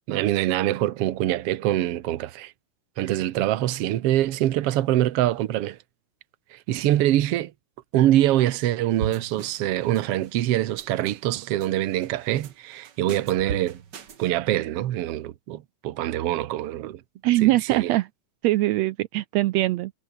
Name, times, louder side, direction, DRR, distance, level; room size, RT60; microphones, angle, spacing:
voice 1, 0.1-2.5 3.0-5.8 6.5-7.5 7.9-13.8 14.2-17.0 17.4-17.9, right 13 dB, 65° right, 1.6 m, -24 dB
sound 1, 9.0-9.7 9.9-10.4 10.8-11.7 12.0-12.5 12.8-14.3, right 7 dB, 45° right, 1.6 m, -36 dB
voice 2, 17.2-18.1 18.4-19.9, right 17 dB, 80° right, 1.5 m, -22 dB
omnidirectional pair, 3.7 m